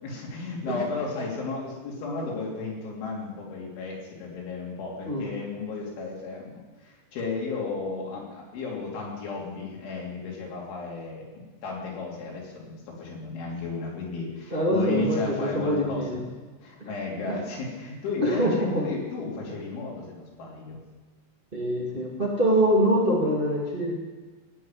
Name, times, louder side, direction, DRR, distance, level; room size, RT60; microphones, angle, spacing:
voice 1, 0.0-16.2 16.6-20.8, left 3 dB, 85° left, -3 dB, 5.5 m, -34 dB
voice 2, 14.5-16.3 16.8-16.9 17.3-17.4 18.2-18.8 21.5-24.0, equal, 25° right, -4 dB, 1.1 m, -24 dB
17.0 x 5.8 x 9.1 m, 1.3 s
omnidirectional pair, 5.3 m